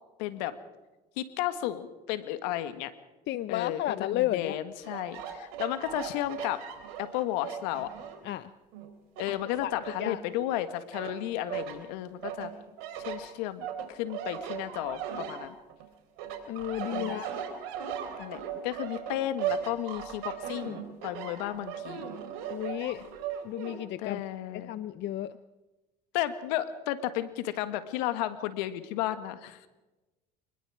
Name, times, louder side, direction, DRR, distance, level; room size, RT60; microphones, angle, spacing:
voice 1, 0.2-0.6 1.2-2.9 3.5-6.7 7.0-7.9 9.2-12.5 13.0-15.6 16.9-17.2 18.2-22.1 24.0-24.7 26.1-29.7, left 13 dB, 80° left, 12 dB, 1.7 m, -33 dB
voice 2, 3.3-4.6 8.2-8.5 9.6-9.7 10.0-10.2 16.5-17.3 22.5-23.0 23.4-24.2 24.5-25.3, left 13 dB, 55° left, 15 dB, 0.8 m, -32 dB
sound 1, 4.8-8.3 8.7-10.5 10.9-11.8 12.2-15.9 16.2-23.8, right 9 dB, 75° right, 4.1 m, -38 dB
26.5 x 20.5 x 4.9 m, 1.1 s
hypercardioid pair, 75°, 21 cm